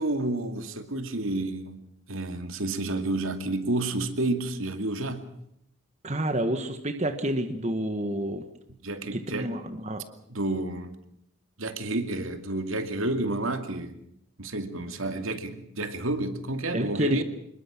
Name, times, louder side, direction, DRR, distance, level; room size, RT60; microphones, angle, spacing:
voice 1, 0.0-5.3 8.8-9.6 10.3-10.9 11.6-14.0 14.4-17.2, right 2 dB, 70° right, 2.5 m, -30 dB
voice 2, 6.0-8.4 9.1-10.0 16.7-17.2, right 1 dB, 30° right, 1.6 m, -29 dB
26.5 x 22.0 x 6.1 m
head